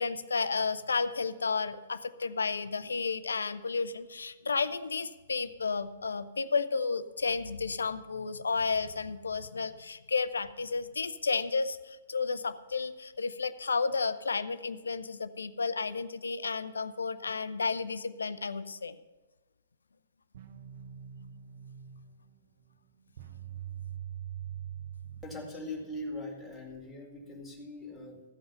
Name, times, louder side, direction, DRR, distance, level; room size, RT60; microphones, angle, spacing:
voice 1, 0.0-19.0, left 4 dB, 70° left, 15 dB, 0.5 m, -32 dB
sound 1, 20.3-25.9, right 10 dB, 50° right, 0.7 m, -44 dB
voice 2, 25.2-28.2, left 1 dB, ahead, -5 dB, 2.3 m, -41 dB
14.5 x 5.4 x 6.8 m, 1.2 s
figure-of-eight pair, 115°, 0 cm